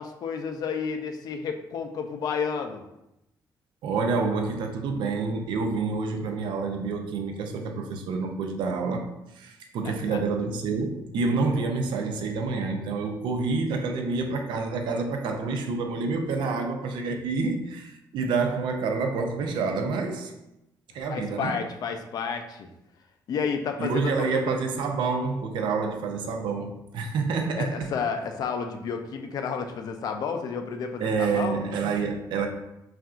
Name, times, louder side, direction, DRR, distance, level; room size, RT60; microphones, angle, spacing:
voice 1, 0.0-2.8 9.8-10.2 21.1-22.7 23.3-24.4 27.6-31.6, left 6 dB, 55° left, 5 dB, 0.4 m, -31 dB
voice 2, 3.8-9.1 9.3-20.3 20.9-21.5 23.8-27.9 31.0-32.5, right 4 dB, 85° right, 4 dB, 0.5 m, -28 dB
5.6 x 2.5 x 2.4 m, 0.88 s
cardioid pair, 155°, 8 cm